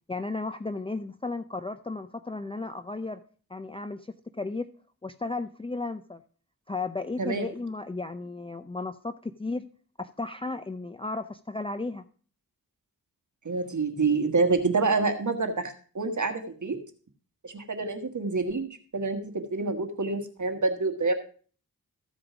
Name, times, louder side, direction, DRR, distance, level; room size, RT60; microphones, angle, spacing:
voice 1, 0.1-3.2 3.5-4.7 5.0-6.2 6.7-9.6 10.0-12.0, left 3 dB, 15° left, 10 dB, 0.6 m, -34 dB
voice 2, 13.4-16.8 17.4-21.1, right 3 dB, 55° right, 6 dB, 1.5 m, -27 dB
14.5 x 5.0 x 5.9 m, 0.42 s
wide cardioid pair, 60°, 36 cm